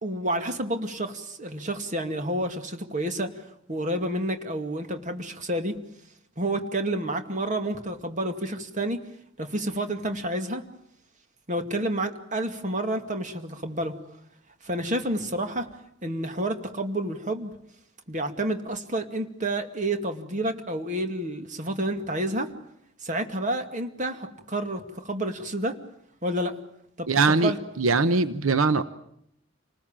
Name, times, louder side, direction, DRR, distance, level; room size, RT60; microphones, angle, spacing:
voice 1, 0.0-5.7 6.4-9.0 9.4-10.6 11.5-14.0 14.6-15.7 16.0-17.5 18.1-22.5 23.0-25.8 26.2-26.6 27.0-27.6, right 1 dB, 35° right, 6 dB, 2.3 m, -29 dB
voice 2, 27.1-28.8, right 3 dB, 85° right, 13 dB, 0.9 m, -22 dB
28.0 x 20.0 x 8.9 m, 0.74 s
head